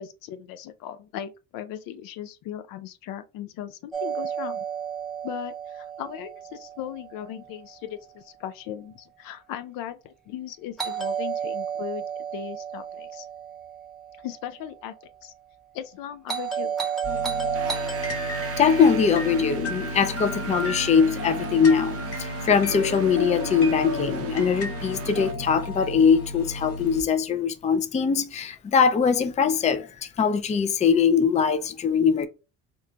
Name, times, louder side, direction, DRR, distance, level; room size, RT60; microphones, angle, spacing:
voice 1, 0.0-4.7 5.2-13.3 14.2-15.0 15.2-15.3 15.7-16.7 18.4-18.5, left 11 dB, 80° left, 0.5 m, -38 dB
Doorbell, 3.9-7.9 10.8-15.0 16.3-20.7, right 8 dB, ahead, 0.8 m, -33 dB
sound 1, 17.0-27.0, left 3 dB, 45° left, 0.9 m, -33 dB
sound 2, 17.5-25.3, right 8 dB, 45° right, 0.5 m, -37 dB
voice 2, 18.6-32.3, left 6 dB, 20° left, 0.4 m, -22 dB
3.0 x 2.2 x 3.8 m
cardioid pair, 95°, 33 cm